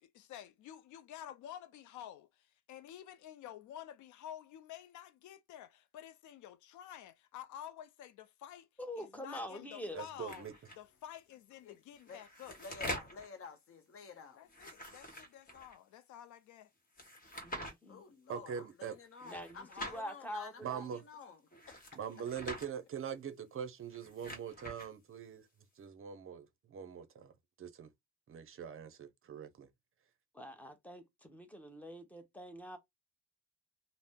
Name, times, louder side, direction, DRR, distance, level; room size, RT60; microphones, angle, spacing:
voice 1, 0.0-8.7 9.0-10.4 10.8-12.6 14.4-16.7, left 11 dB, 75° left, 0.4 m, -50 dB
voice 2, 8.8-10.0 17.4-18.0 19.2-20.8 30.3-32.8, equal, 5° left, 0.8 m, -45 dB
voice 3, 9.9-10.5 18.3-19.0 20.6-21.0 22.0-25.5 25.7-27.3 27.6-27.9 28.3-29.7, right 8 dB, 45° right, 0.6 m, -43 dB
sound 1, 10.3-10.8 11.9-13.3 14.5-15.8 16.9-17.7 19.2-20.0 21.5-22.7 23.8-24.9, equal, 30° left, 1.2 m, -45 dB
voice 4, 12.6-14.4 17.9-21.4, left 5 dB, 50° left, 0.8 m, -50 dB
2.6 x 2.0 x 3.5 m
cardioid pair, 90°, 30 cm